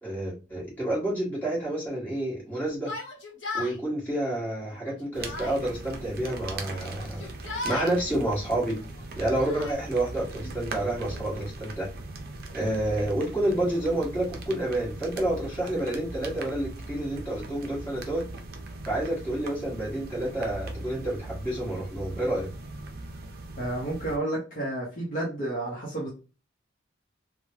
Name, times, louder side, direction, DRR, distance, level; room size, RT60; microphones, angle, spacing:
voice 1, 0.0-2.9 3.5-7.3 7.6-8.8 9.1-11.9 12.5-18.3 18.9-22.5, right 1 dB, 10° left, -7 dB, 1.5 m, -29 dB
Yell, 2.8-3.8 4.7-5.6 6.6-8.0 8.8-9.7, left 3 dB, 70° left, 1.0 m, -36 dB
sound 1, 5.1-24.2, right 2 dB, 50° right, 0.5 m, -40 dB
voice 2, 23.6-26.1, right 1 dB, 40° left, -5 dB, 0.9 m, -31 dB
3.2 x 2.2 x 2.7 m, 0.32 s
head